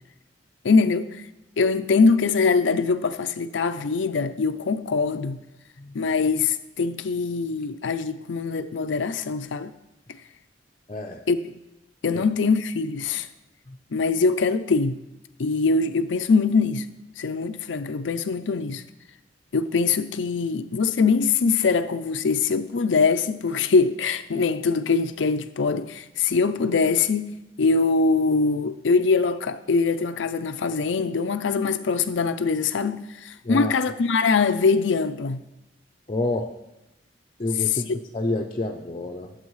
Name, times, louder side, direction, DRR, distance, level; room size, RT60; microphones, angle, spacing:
voice 1, 0.6-1.2 1.6-5.4 5.9-9.7 11.3-11.4 12.0-13.3 13.9-15.0 15.4-16.9 17.2-18.8 19.5-27.3 27.6-35.4 37.7-38.0, left 4 dB, 85° left, 0.5 m, -23 dB
voice 2, 10.9-11.2 12.1-12.2 13.7-13.8 33.4-33.8 36.1-36.5 37.4-39.3, left 2 dB, 30° left, 0.6 m, -28 dB
19.5 x 8.0 x 3.2 m
head